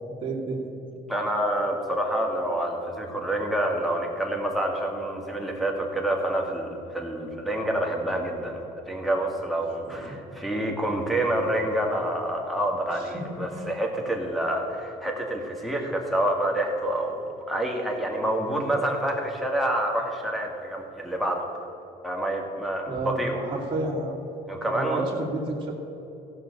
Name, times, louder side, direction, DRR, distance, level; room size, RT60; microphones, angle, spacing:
voice 1, 0.2-0.7 10.0-10.3 12.9-13.2 13.5-13.6 22.9-24.2 24.6-25.7, right 2 dB, 30° right, -5 dB, 2.5 m, -31 dB
voice 2, 1.1-21.5 22.0-23.4 24.5-25.0, right 1 dB, ahead, -1 dB, 2.0 m, -27 dB
15.5 x 5.7 x 6.7 m, 3.0 s
cardioid pair, 110°, 17 cm